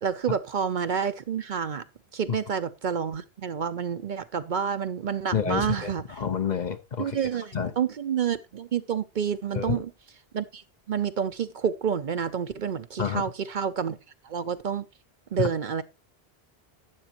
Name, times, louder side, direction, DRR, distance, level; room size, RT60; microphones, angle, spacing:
voice 1, 0.0-1.8 2.1-6.2 7.0-9.9 10.3-14.0 14.2-14.9 15.3-15.8, right 7 dB, 55° right, 0.7 m, -29 dB
voice 2, 5.3-5.9 6.2-7.1 7.5-7.7 9.5-9.8 13.0-13.2, left 7 dB, 45° left, 0.9 m, -28 dB
12.0 x 8.4 x 2.9 m
omnidirectional pair, 1.0 m